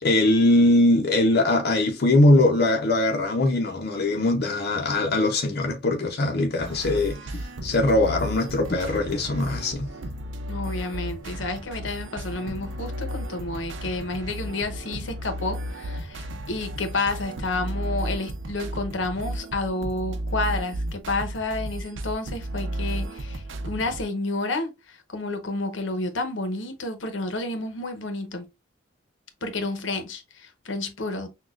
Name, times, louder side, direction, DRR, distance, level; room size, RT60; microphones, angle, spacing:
voice 1, 0.0-9.9, left 2 dB, 55° left, 0.6 m, -21 dB
sound 1, 6.6-24.0, right 1 dB, 85° right, 0.7 m, -33 dB
voice 2, 10.5-28.5 29.4-31.3, left 2 dB, 80° left, 0.8 m, -30 dB
6.0 x 2.3 x 2.4 m
head